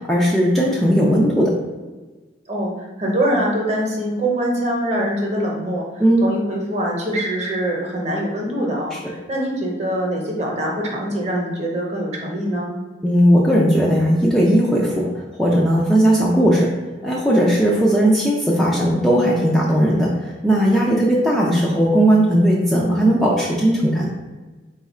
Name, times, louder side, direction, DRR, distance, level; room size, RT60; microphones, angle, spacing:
voice 1, 0.0-1.6 6.0-6.3 8.9-9.0 13.0-16.7 17.0-24.1, equal, ahead, -5 dB, 0.4 m, -17 dB
voice 2, 3.0-5.8 6.2-12.7, right 1 dB, 35° right, -1 dB, 0.9 m, -23 dB
4.0 x 2.4 x 4.1 m, 1.3 s
head